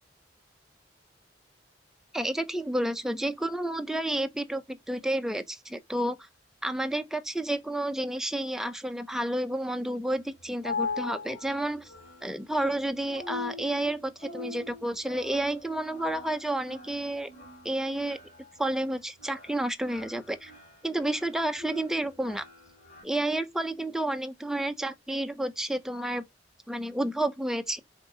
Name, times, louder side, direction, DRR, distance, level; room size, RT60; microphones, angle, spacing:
voice 1, 2.1-6.3 6.6-11.9 12.2-17.3 17.6-18.2 18.6-20.5 20.8-22.4 23.0-26.2 26.7-27.8, right 1 dB, ahead, 0.4 m, -30 dB
sound 1, 10.2-23.0, left 4 dB, 50° left, 2.4 m, -41 dB
4.1 x 3.6 x 2.7 m
head